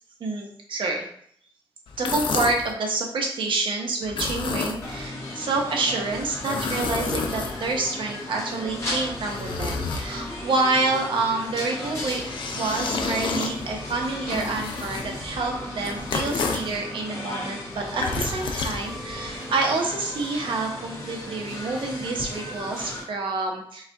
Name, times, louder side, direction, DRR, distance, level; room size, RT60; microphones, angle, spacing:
voice 1, 0.2-1.1 2.0-12.2 12.5-23.9, right 3 dB, 65° right, 1 dB, 1.0 m, -28 dB
sound 1, 1.9-2.7 4.0-5.1 6.1-7.9 8.6-10.5 11.9-16.8 17.7-19.4, left 4 dB, 65° left, 0.5 m, -31 dB
sound 2, 4.8-23.0, left 1 dB, 30° left, 1.4 m, -35 dB
5.5 x 2.5 x 3.5 m, 0.64 s
wide cardioid pair, 170°, 9 cm